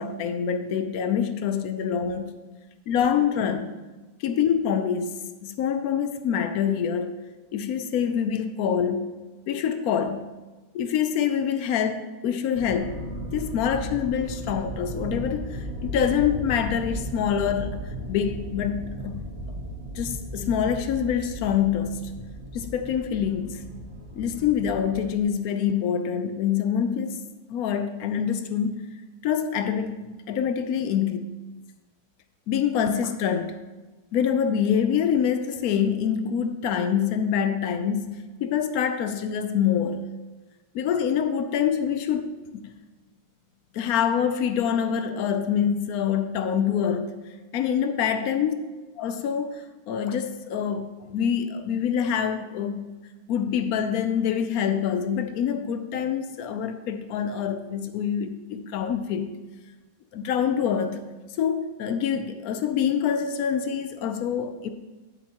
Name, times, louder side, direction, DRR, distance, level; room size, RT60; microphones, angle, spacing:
voice 1, 0.0-2.3 2.9-3.7 4.2-7.2 7.5-9.2 9.5-10.3 10.7-13.0 13.3-19.2 20.0-22.1 22.5-23.7 24.1-27.2 27.5-28.8 29.2-31.2 32.5-33.6 34.1-40.1 40.7-42.4 43.7-47.2 47.5-48.5 49.0-52.8 53.3-59.4 60.1-61.1 61.4-64.7, left 8 dB, 75° left, 0.8 m, -26 dB
sound 1, 12.5-25.2, equal, 35° right, 1.4 m, -36 dB
10.0 x 7.6 x 2.9 m
omnidirectional pair, 2.0 m